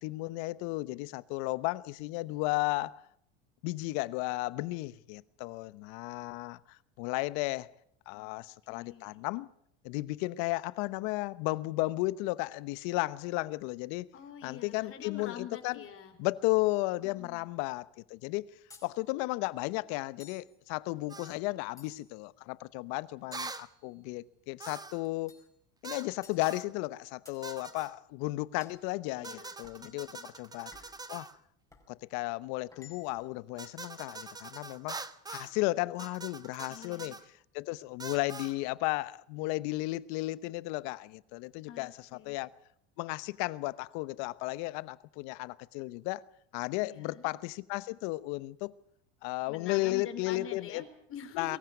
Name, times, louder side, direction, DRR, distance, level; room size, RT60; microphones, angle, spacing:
voice 1, 0.0-3.0 3.6-7.7 8.1-9.5 9.8-14.1 14.4-15.8 16.2-18.5 18.8-25.4 25.8-29.3 29.6-30.7 31.1-31.3 31.9-35.0 35.3-37.2 37.5-42.5 43.0-46.3 46.5-48.7 49.2-50.8 51.3-51.6, left 21 dB, 65° left, 1.0 m, -34 dB
voice 2, 8.1-8.4 8.7-9.1 14.1-16.2 17.0-17.5 29.2-29.5 29.8-30.3 36.7-37.2 41.6-42.4 46.8-47.3 49.5-51.6, left 8 dB, 45° left, 4.4 m, -46 dB
sound 1, 18.7-18.9 20.2-20.5 21.8-22.2 23.3-24.2 25.3-25.6 26.2-26.5 27.2-27.5 28.6-28.8 29.6-29.9 30.7-31.0 31.7-31.9 32.7-33.3, left 4 dB, 10° left, 5.4 m, -56 dB
sound 2, 21.1-21.4 23.3-23.7 24.6-25.1 25.8-26.1 26.4-26.7 27.4-27.9 29.2-31.4 33.6-35.5 36.0-37.2 38.0-38.6, right 3 dB, 10° right, 1.1 m, -44 dB
23.0 x 15.0 x 9.4 m
supercardioid pair, 95°, 31 cm